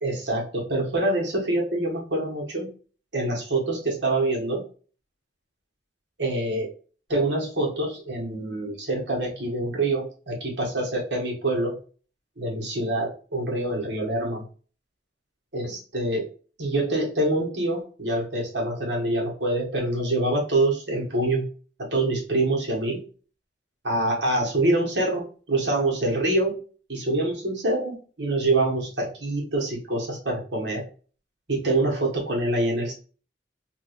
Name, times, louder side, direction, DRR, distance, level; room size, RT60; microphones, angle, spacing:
voice 1, 0.0-2.7 3.1-4.6 6.2-6.7 7.1-11.8 12.4-14.4 15.5-16.3 16.6-21.5 21.8-23.0 23.8-26.6 26.9-30.9 31.5-32.9, right 2 dB, 85° right, -2 dB, 1.7 m, -25 dB
3.5 x 2.7 x 3.2 m, 0.38 s
head